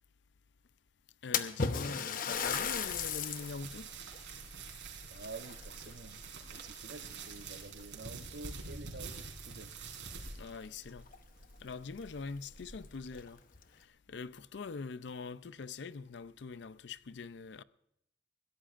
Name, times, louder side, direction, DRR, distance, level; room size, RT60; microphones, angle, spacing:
voice 1, 1.2-3.9 10.4-11.1 11.6-13.4 13.7-17.6, left 4 dB, 70° left, 0.5 m, -43 dB
Splash splatter, 1.3-3.6 4.1-4.2 5.1-6.2 6.5-7.0 7.8-7.9 8.4-8.5 10.6-10.7 11.1-11.2 11.7-11.8 12.2-12.3 13.1-13.6, left 6 dB, 50° left, 0.9 m, -35 dB
sound 1, 2.3-13.3, right 4 dB, 90° right, 3.9 m, -47 dB
voice 2, 5.1-6.2 6.5-9.7, right 3 dB, 70° right, 1.0 m, -49 dB
21.5 x 16.5 x 2.5 m
head